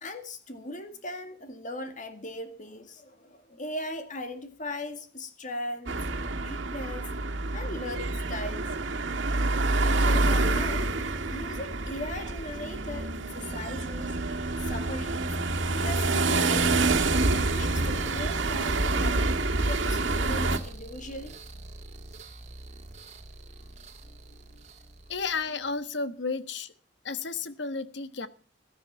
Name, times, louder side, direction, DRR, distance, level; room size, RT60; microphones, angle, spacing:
voice 1, 0.0-6.0 6.3-7.1 7.5-8.7 9.8-10.9 11.3-15.4 15.7-16.9 17.3-21.3 24.0-24.6, left 1 dB, 40° left, 2.0 m, -39 dB
sound 1, 5.9-20.6, right 2 dB, 75° right, 1.9 m, -27 dB
sound 2, 15.7-25.7, right 2 dB, 40° right, 2.0 m, -43 dB
voice 2, 25.1-26.7 27.0-28.3, left 4 dB, 65° left, 1.3 m, -32 dB
17.0 x 13.0 x 4.3 m
head